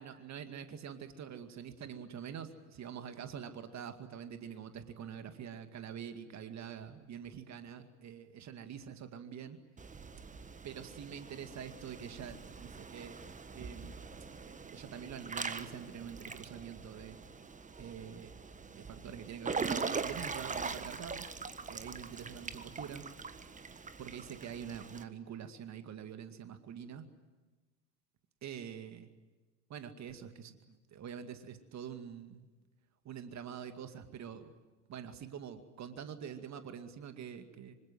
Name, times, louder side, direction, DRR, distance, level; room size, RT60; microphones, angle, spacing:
voice 1, 0.0-9.6 10.6-13.2 13.5-13.9 14.4-17.2 17.8-18.3 18.6-21.2 21.7-23.1 24.0-27.1 28.4-29.1 29.7-32.5 33.0-34.5 34.9-37.7, right 8 dB, 35° right, 8 dB, 2.3 m, -45 dB
Water / Splash splatter / Drip, 9.8-25.0, right 4 dB, 15° right, 1.5 m, -42 dB
26.0 x 25.5 x 7.7 m, 1.2 s
figure-of-eight pair, 70°, 45 cm